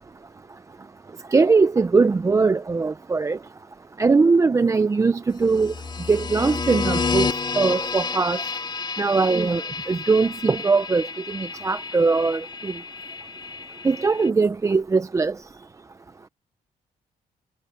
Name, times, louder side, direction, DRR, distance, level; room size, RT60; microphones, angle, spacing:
voice 1, 1.3-3.4 4.0-5.7 6.1-7.3 7.6-8.4 9.0-9.6 9.9-11.1 11.3-12.7 13.8-15.3, right 4 dB, 20° right, 0.5 m, -20 dB
sound 1, 5.5-14.3, left 4 dB, 30° left, 2.7 m, -30 dB
cardioid pair, 125°, 15 cm